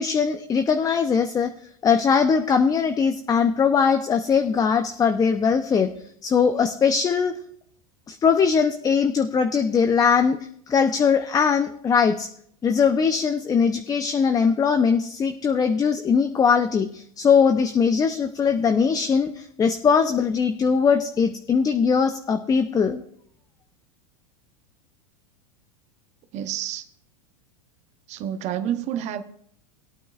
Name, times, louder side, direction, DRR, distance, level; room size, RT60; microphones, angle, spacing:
voice 1, 0.0-1.5 1.8-5.9 6.2-7.4 8.1-10.4 10.7-12.3 12.6-23.0, left 6 dB, 20° left, 7 dB, 0.7 m, -21 dB
voice 2, 26.3-26.8 28.1-29.2, right 10 dB, 40° right, 8 dB, 0.9 m, -29 dB
20.0 x 8.9 x 2.5 m, 0.65 s
hypercardioid pair, 120°, 18 cm